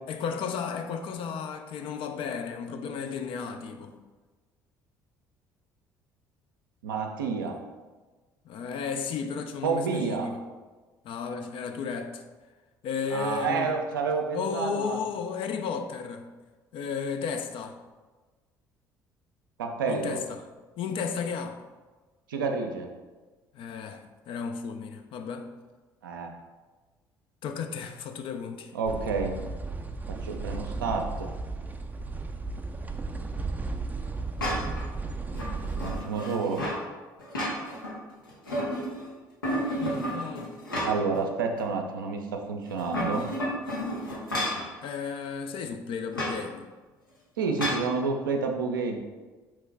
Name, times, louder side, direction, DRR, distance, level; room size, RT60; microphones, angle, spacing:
voice 1, 0.1-3.9 8.5-10.4 11.0-12.2 12.8-13.7 14.3-16.3 16.7-17.8 19.9-20.4 20.8-21.6 23.5-25.5 27.4-28.7 39.8-40.5 44.8-46.7, left 6 dB, 55° left, 6 dB, 0.4 m, -34 dB
voice 2, 6.8-7.6 9.6-10.3 13.1-15.0 19.6-20.2 22.3-22.9 26.0-26.3 28.7-29.3 30.1-31.3 35.8-36.6 40.8-43.3 47.4-49.0, right 4 dB, 80° right, 4 dB, 0.4 m, -29 dB
sound 1, 28.9-36.0, right 3 dB, 15° right, 0.4 m, -34 dB
sound 2, 34.4-34.8 35.3-36.8 37.2-37.9 38.3-39.0 39.4-41.2 41.6-41.7 42.7-44.7 46.1-46.4 47.6-47.9, equal, 90° left, 0.7 m, -31 dB
3.7 x 3.1 x 3.3 m, 1.3 s
figure-of-eight pair, 55°, 11 cm